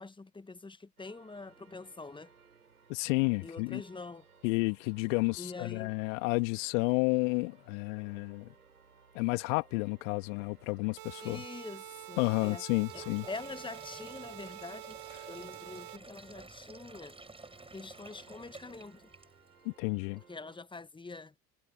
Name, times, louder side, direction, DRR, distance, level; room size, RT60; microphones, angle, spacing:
voice 1, 0.0-2.3 3.4-4.2 5.4-5.9 11.2-12.6 13.3-15.0 15.3-17.2 17.7-19.1 20.3-21.3, left 3 dB, 10° left, 1.4 m, -45 dB
sound 1, 1.0-20.6, right 5 dB, 85° right, 7.4 m, -62 dB
voice 2, 2.9-3.8 4.4-8.5 9.1-11.4 12.2-13.3 19.6-20.2, left 29 dB, 60° left, 2.2 m, -31 dB
sound 2, 11.0-16.0, right 17 dB, 50° right, 6.4 m, -47 dB
Sink (filling or washing), 12.7-19.6, right 3 dB, 10° right, 6.4 m, -52 dB
figure-of-eight pair, 65°, 43 cm